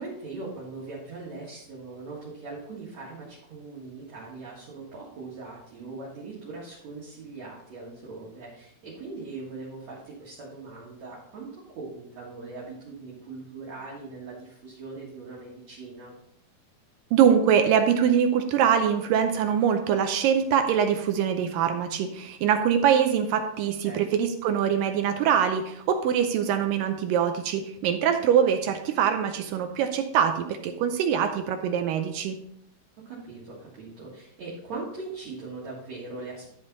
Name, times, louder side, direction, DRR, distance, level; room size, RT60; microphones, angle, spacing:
voice 1, 0.0-16.1 23.8-24.1 33.1-36.5, right 3 dB, 50° right, -6 dB, 2.6 m, -40 dB
voice 2, 17.1-32.4, right 8 dB, 80° right, 6 dB, 2.0 m, -23 dB
11.0 x 5.4 x 4.0 m, 0.73 s
omnidirectional pair, 4.5 m